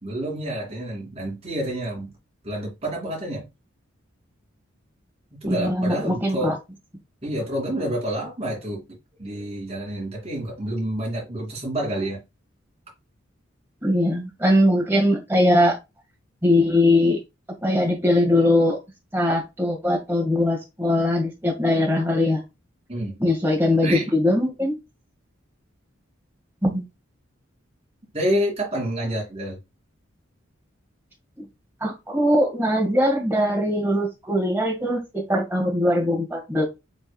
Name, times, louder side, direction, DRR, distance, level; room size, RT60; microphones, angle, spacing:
voice 1, 0.0-2.1 2.4-3.5 5.4-6.6 7.2-8.8 9.2-12.2 22.9-23.2 23.8-24.1 28.1-29.6, right 1 dB, 30° right, 2.7 m, -28 dB
voice 2, 5.4-6.5 13.8-15.8 16.4-17.2 17.6-18.8 19.1-22.4 23.2-24.8 26.6-26.8 31.4-31.5 31.8-36.6, left 1 dB, 10° right, 1.7 m, -21 dB
6.3 x 3.5 x 2.3 m
head